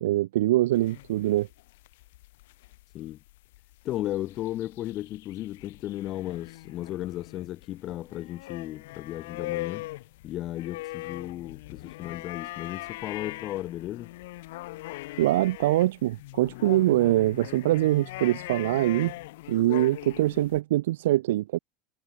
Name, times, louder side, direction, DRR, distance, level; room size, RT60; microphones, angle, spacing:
voice 1, 0.0-1.5 15.2-19.1 19.5-21.6, right 15 dB, 80° right, 2.2 m, -23 dB
sound 1, 0.7-20.6, left 19 dB, 75° left, 4.9 m, -41 dB
voice 2, 3.8-9.9 10.2-14.1, left 14 dB, 50° left, 3.5 m, -35 dB
hypercardioid pair, 100°, 0 cm